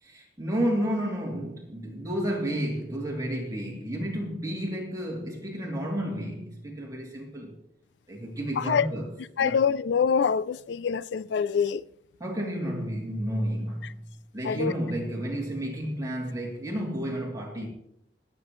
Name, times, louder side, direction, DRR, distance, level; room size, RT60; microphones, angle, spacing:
voice 1, 0.0-7.5 8.1-9.1 9.4-9.6 12.2-14.0 14.3-17.7, equal, 20° right, 2.9 m, -31 dB
voice 2, 8.6-8.9 9.4-11.8 14.4-14.7, left 6 dB, 85° left, 0.4 m, -25 dB
22.5 x 7.7 x 3.1 m
head